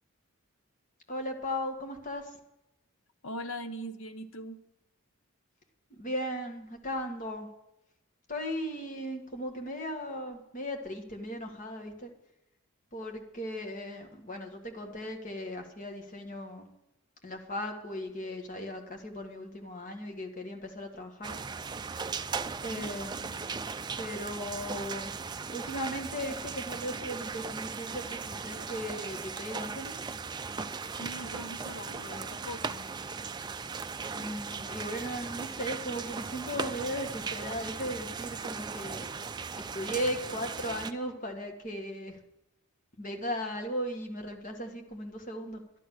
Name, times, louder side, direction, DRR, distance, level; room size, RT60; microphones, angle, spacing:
voice 1, 1.1-2.3 6.0-7.5 8.3-12.1 12.9-16.7 17.2-21.4 22.6-23.5 24.0-25.1 25.5-30.0 34.2-39.1 39.6-42.2 43.0-45.6, equal, 35° left, 3 dB, 1.7 m, -37 dB
voice 2, 3.2-4.6 22.7-22.9 30.9-32.9, equal, 60° left, 10 dB, 0.8 m, -41 dB
sound 1, 21.2-40.9, right 5 dB, 20° right, 0.4 m, -38 dB
11.5 x 11.0 x 6.5 m, 0.87 s
head